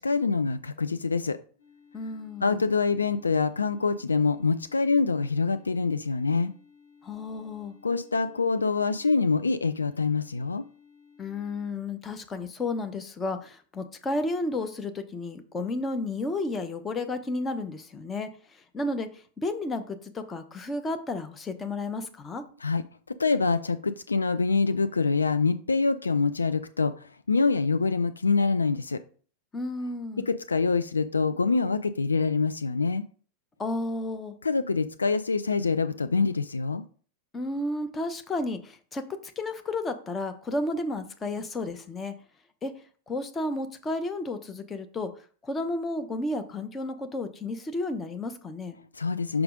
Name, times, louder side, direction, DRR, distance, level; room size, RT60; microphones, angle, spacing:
voice 1, 0.0-1.4 2.4-6.5 7.8-10.6 22.6-22.8 23.1-29.0 30.3-33.0 34.4-36.8 49.0-49.4, left 4 dB, 80° left, 11 dB, 0.3 m, -25 dB
sound 1, 1.6-11.7, left 6 dB, 60° left, 3.5 m, -57 dB
voice 2, 1.9-2.6 7.0-7.7 11.2-18.3 18.5-19.1 19.4-22.4 29.5-30.3 33.6-34.3 37.3-42.1 42.6-42.7 43.1-45.1 45.4-48.8, left 2 dB, 20° left, 8 dB, 0.9 m, -32 dB
5.9 x 4.8 x 3.8 m, 0.43 s
figure-of-eight pair, 90°, 0 cm